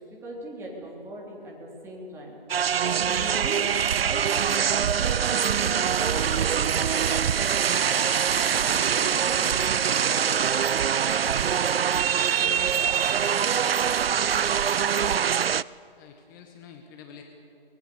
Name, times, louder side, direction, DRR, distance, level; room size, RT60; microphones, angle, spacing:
voice 1, 0.0-2.4 2.9-3.6 4.0-8.1 8.6-10.5, right 1 dB, 10° right, -3 dB, 3.4 m, -39 dB
sound 1, 2.5-15.6, right 8 dB, 75° right, 0.5 m, -24 dB
voice 2, 14.8-15.1 16.0-17.2, left 7 dB, 20° left, 4 dB, 1.4 m, -47 dB
24.0 x 20.5 x 6.9 m, 2.6 s
figure-of-eight pair, 150°, 30 cm